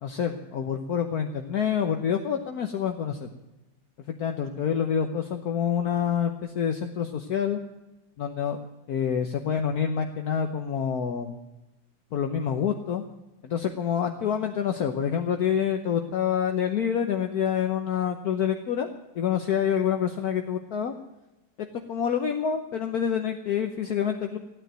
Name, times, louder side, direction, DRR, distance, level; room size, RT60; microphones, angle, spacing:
voice 1, 0.0-3.3 4.1-7.6 8.2-8.6 8.9-11.3 12.1-13.0 13.4-18.9 19.1-20.9 21.9-24.4, left 8 dB, 60° left, 5 dB, 1.3 m, -27 dB
15.0 x 9.6 x 9.0 m, 1.0 s
omnidirectional pair, 2.0 m